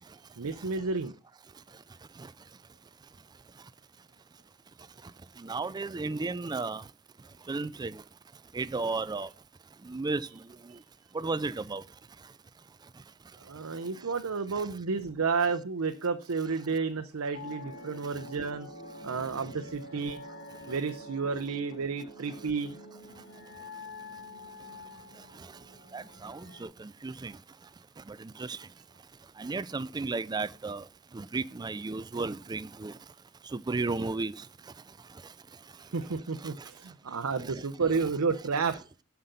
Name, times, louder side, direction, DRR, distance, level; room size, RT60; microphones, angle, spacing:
voice 1, 0.4-1.1 10.7-10.8 13.4-18.7 19.0-20.2 20.7-22.8 35.9-38.7, right 4 dB, 80° right, 0.7 m, -31 dB
voice 2, 5.4-6.8 7.5-8.0 8.5-9.3 9.9-10.3 11.1-11.8 25.9-27.3 28.1-28.6 29.4-30.8 31.1-32.9 33.5-34.3 37.4-37.5, right 3 dB, 20° right, 0.4 m, -33 dB
sound 1, 17.3-26.6, left 2 dB, 60° left, 1.9 m, -46 dB
7.6 x 5.8 x 6.7 m
head